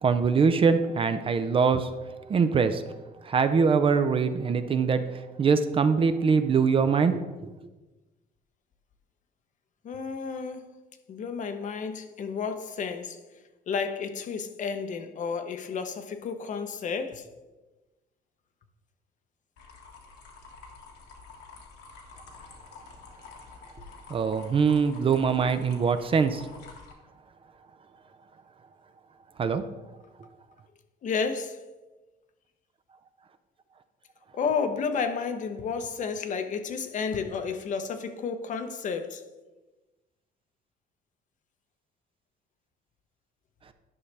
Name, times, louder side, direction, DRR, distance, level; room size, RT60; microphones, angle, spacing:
voice 1, 0.0-1.9 2.3-2.8 3.2-5.0 5.4-7.5 24.1-26.5 29.4-29.6, right 5 dB, 35° right, 0.5 m, -23 dB
voice 2, 9.8-10.7 11.1-13.2 13.7-17.3 31.0-31.6 34.3-39.3, left 5 dB, 50° left, 0.8 m, -31 dB
sound 1, 19.6-26.9, left 4 dB, 80° left, 1.7 m, -48 dB
11.0 x 5.6 x 3.3 m
cardioid pair, 110°, 17 cm